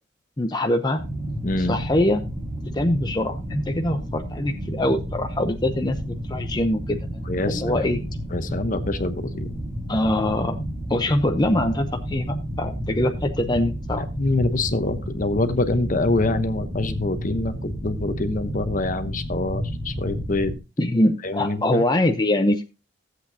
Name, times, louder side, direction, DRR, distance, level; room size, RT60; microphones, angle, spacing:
voice 1, 0.4-1.0 1.6-2.2 2.7-7.2 7.5-8.0 9.9-10.6 10.9-14.0 20.8-22.6, left 1 dB, 25° left, 4 dB, 0.8 m, -23 dB
sound 1, 1.0-20.6, equal, 30° right, 2.4 m, -31 dB
voice 2, 1.4-1.8 7.3-8.0 8.3-9.5 13.9-20.5 21.2-21.8, left 2 dB, 45° left, 9 dB, 1.0 m, -25 dB
14.5 x 8.1 x 2.8 m, 0.28 s
head